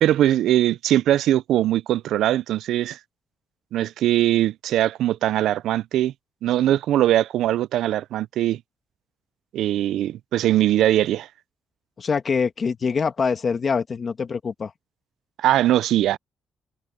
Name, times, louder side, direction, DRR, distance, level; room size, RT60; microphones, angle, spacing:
voice 1, 0.0-3.0 3.7-6.1 6.4-8.6 9.5-11.3 15.4-16.2, right 13 dB, 85° right, 0.4 m, -21 dB
voice 2, 12.0-14.7, left 5 dB, 35° left, 2.1 m, -24 dB
cardioid pair, 130°, 0 cm